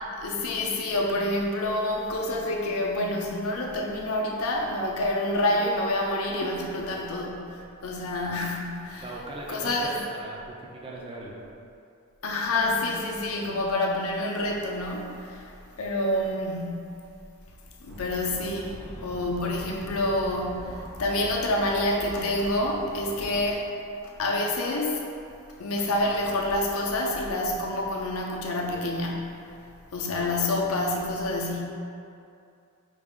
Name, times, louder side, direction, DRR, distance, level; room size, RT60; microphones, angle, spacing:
voice 1, 0.2-9.1 9.5-10.0 12.2-17.0 17.8-23.7 24.0-25.1 25.6-29.4 29.9-31.6, left 1 dB, 70° left, -1 dB, 0.6 m, -28 dB
voice 2, 9.0-11.4, right 2 dB, 25° right, -3 dB, 0.5 m, -39 dB
sound 1, 17.9-23.5, equal, 50° right, 1.4 m, -43 dB
4.9 x 2.4 x 3.6 m, 2.5 s
head